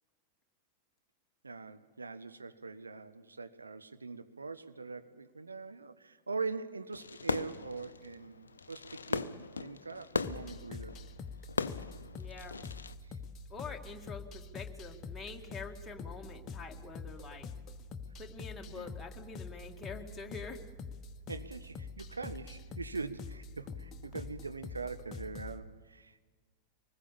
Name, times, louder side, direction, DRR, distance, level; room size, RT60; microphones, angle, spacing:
voice 1, 1.4-11.0 13.0-13.2 18.7-18.9 21.3-26.2, right 4 dB, 80° right, 0.9 m, -42 dB
Fireworks, 6.9-12.9, left 5 dB, 70° left, 0.6 m, -39 dB
sound 1, 10.2-25.6, left 4 dB, 30° left, 1.1 m, -45 dB
voice 2, 12.2-12.6 13.5-17.5 18.2-20.7, left 4 dB, 10° left, 2.1 m, -46 dB
24.0 x 20.0 x 7.0 m
figure-of-eight pair, 90°, 0 cm